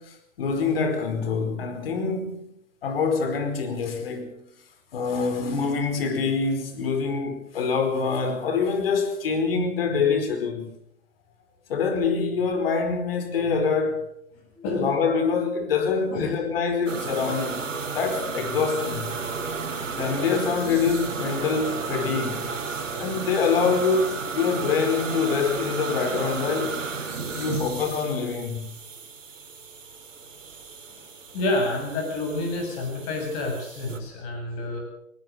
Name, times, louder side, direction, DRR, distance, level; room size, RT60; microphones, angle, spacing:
voice 1, 0.0-2.5 2.8-4.4 4.9-10.7 11.7-14.0 14.7-17.7 17.9-19.2 20.0-22.5 23.0-26.8 27.3-28.8, left 5 dB, 45° left, 4.9 m, -25 dB
voice 2, 14.5-14.9 16.1-16.3 27.1-27.2 30.9-31.0 31.3-34.8, left 2 dB, 25° left, 7.9 m, -28 dB
sound 1, 16.9-34.0, right 4 dB, 65° right, 4.4 m, -33 dB
20.5 x 19.5 x 6.9 m
figure-of-eight pair, 145°, 40 cm